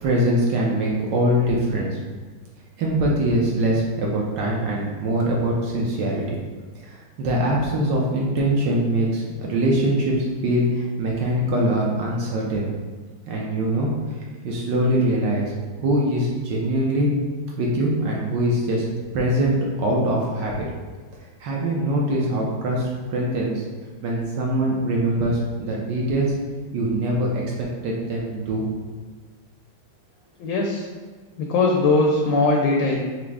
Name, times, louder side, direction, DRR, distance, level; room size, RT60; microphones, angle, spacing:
voice 1, 0.0-2.0 2.8-6.4 6.8-12.7 13.3-13.9 14.4-15.5 15.8-17.1 17.6-18.8 19.1-20.7 21.4-23.6 24.0-26.3 26.7-28.6, right 1 dB, 70° right, -3 dB, 1.2 m, -23 dB
voice 2, 30.4-30.9 31.4-33.0, left 3 dB, 75° left, -1 dB, 1.2 m, -20 dB
5.9 x 2.0 x 3.3 m, 1.4 s
omnidirectional pair, 2.2 m